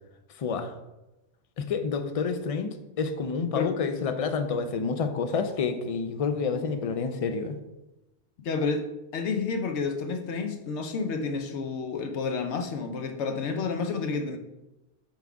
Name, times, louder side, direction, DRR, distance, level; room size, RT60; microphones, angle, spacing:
voice 1, 0.4-0.7 1.6-7.6, left 5 dB, 55° left, 8 dB, 0.4 m, -29 dB
voice 2, 8.4-8.8 9.1-14.4, left 4 dB, 80° left, 5 dB, 1.0 m, -30 dB
6.0 x 3.5 x 4.6 m, 0.98 s
omnidirectional pair, 1.1 m